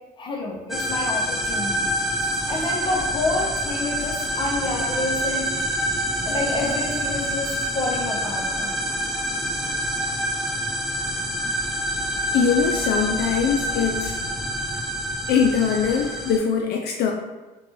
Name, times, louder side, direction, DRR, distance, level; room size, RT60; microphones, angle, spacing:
voice 1, 0.2-1.9 2.5-5.5 6.2-8.8, left 2 dB, 30° left, 0 dB, 0.8 m, -28 dB
sound 1, 0.7-16.4, equal, ahead, 0.4 m, -26 dB
voice 2, 12.3-14.2 15.3-17.1, left 6 dB, 70° left, 2 dB, 0.4 m, -22 dB
3.8 x 2.3 x 3.1 m, 1.2 s
cardioid pair, 110°, 17 cm